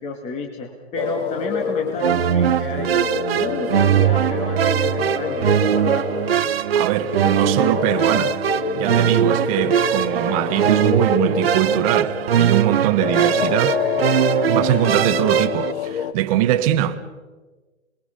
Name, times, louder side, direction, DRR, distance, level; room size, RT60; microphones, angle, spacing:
voice 1, 0.0-2.9 3.3-6.1, left 3 dB, 20° left, 2.2 m, -31 dB
sound 1, 1.0-16.1, left 7 dB, 50° left, 1.2 m, -27 dB
sound 2, 2.0-15.7, right 9 dB, 60° right, 1.0 m, -21 dB
voice 2, 6.7-8.3 8.8-13.8 14.5-17.0, right 12 dB, 30° right, 1.3 m, -22 dB
27.5 x 21.5 x 5.2 m
figure-of-eight pair, 130°, 35 cm